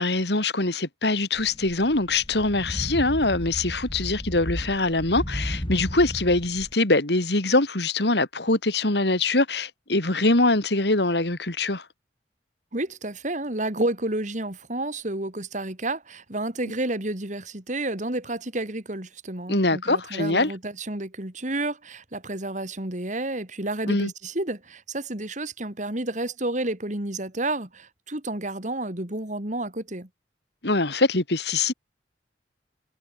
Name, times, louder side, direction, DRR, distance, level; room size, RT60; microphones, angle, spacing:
voice 1, 0.0-11.8 19.5-20.5 23.9-24.1 30.6-31.7, left 2 dB, 70° left, 3.0 m, -23 dB
sound 1, 1.3-6.7, equal, 30° left, 2.6 m, -34 dB
voice 2, 12.7-30.1, right 2 dB, 45° right, 3.1 m, -30 dB
head